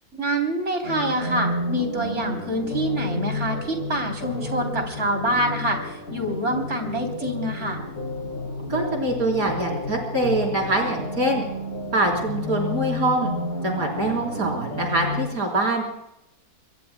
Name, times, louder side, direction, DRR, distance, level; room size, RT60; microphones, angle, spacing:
voice 1, 0.1-7.8, right 1 dB, 50° right, 3 dB, 3.7 m, -26 dB
sound 1, 0.8-15.3, left 2 dB, 70° left, 3.5 m, -31 dB
voice 2, 8.7-11.4 11.9-13.3 13.6-15.8, right 2 dB, 70° right, 1 dB, 4.5 m, -24 dB
24.5 x 22.0 x 2.2 m, 0.83 s
omnidirectional pair, 1.6 m